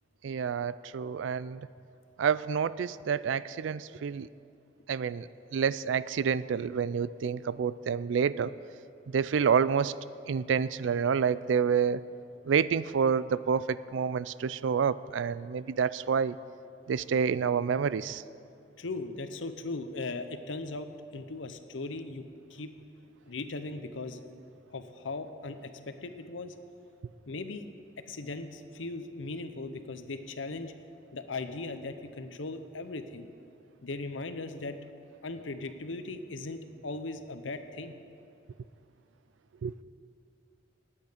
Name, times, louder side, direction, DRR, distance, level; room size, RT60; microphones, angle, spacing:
voice 1, 0.2-1.7 2.2-4.3 4.9-8.5 9.1-9.9 10.3-12.0 12.4-16.4 16.9-18.2 39.6-39.8, right 6 dB, 75° right, 17 dB, 0.4 m, -28 dB
voice 2, 18.8-22.2 22.5-22.7 23.3-24.2 24.7-26.5 27.3-27.7 28.1-30.7 31.1-33.3 33.8-34.7 35.2-37.9, left 3 dB, 85° left, 9 dB, 0.8 m, -38 dB
19.0 x 8.7 x 5.1 m, 2.5 s
head